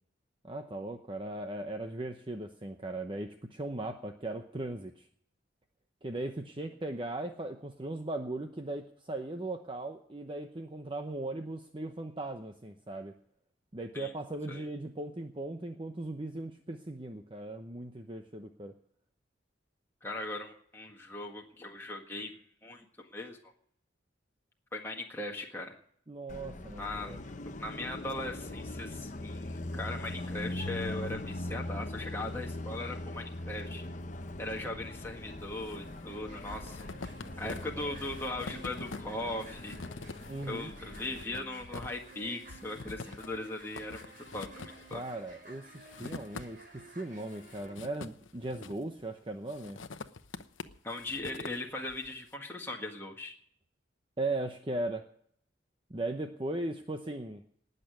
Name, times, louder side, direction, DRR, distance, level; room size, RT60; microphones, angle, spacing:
voice 1, 0.4-5.1 6.0-13.1 13.7-18.7 26.1-27.2 34.6-34.7 37.4-37.9 40.3-40.7 44.9-49.8 54.2-55.0 55.9-57.4, right 2 dB, 25° right, 5 dB, 0.9 m, -38 dB
voice 2, 20.0-23.5 24.7-25.7 26.8-27.2 27.6-33.8 34.4-36.8 37.4-39.8 40.5-44.0 44.3-45.0 50.8-53.3, left 2 dB, 10° left, -1 dB, 1.7 m, -39 dB
Car passing by, 26.3-41.2, left 1 dB, 40° left, 0.9 m, -41 dB
sound 1, 35.2-35.8 36.1-46.8 47.2-49.0 49.5-52.2, left 3 dB, 90° left, 0.9 m, -46 dB
sound 2, 35.7-47.7, right 1 dB, 45° right, 4.3 m, -53 dB
19.0 x 6.8 x 9.4 m, 0.64 s
head